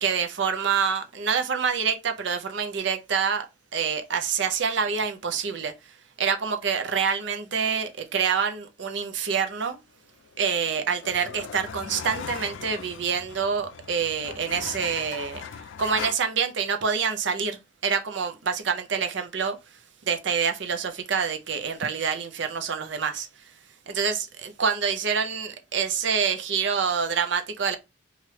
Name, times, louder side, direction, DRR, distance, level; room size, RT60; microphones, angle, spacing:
voice 1, 0.0-3.5 3.7-9.8 10.4-15.4 15.8-19.6 20.1-23.3 23.9-27.8, right 6 dB, 60° right, 0.5 m, -27 dB
sound 1, 10.3-16.1, left 7 dB, 65° left, 0.3 m, -39 dB
3.2 x 2.4 x 3.0 m
head